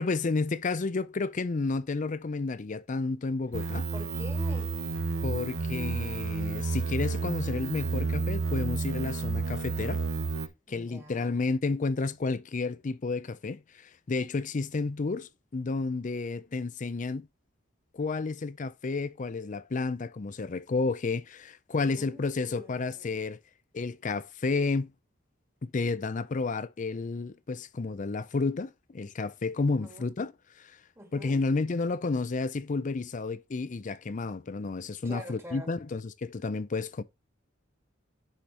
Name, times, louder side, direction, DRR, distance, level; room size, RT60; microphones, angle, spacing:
voice 1, 0.0-3.9 5.2-10.0 10.7-17.3 17.9-23.4 23.7-24.9 25.6-30.3 30.6-30.7 31.1-37.0, left 3 dB, 40° left, 0.5 m, -31 dB
sound 1, 3.5-10.5, right 4 dB, 85° right, 0.9 m, -31 dB
voice 2, 3.6-4.8 10.7-11.4 21.8-23.2 29.6-30.2 31.0-31.4 35.0-35.7, equal, 15° right, 2.2 m, -46 dB
10.0 x 5.1 x 2.9 m
head